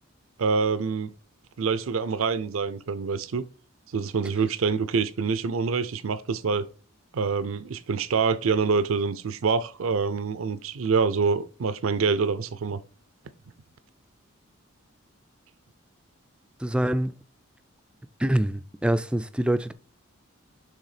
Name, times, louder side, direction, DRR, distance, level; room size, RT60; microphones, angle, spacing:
voice 1, 0.4-1.1 1.6-3.4 3.9-6.7 7.1-12.8, right 5 dB, 75° right, 0.5 m, -26 dB
voice 2, 16.6-17.1 18.2-19.7, right 1 dB, 5° right, 0.3 m, -25 dB
6.6 x 3.5 x 4.9 m
head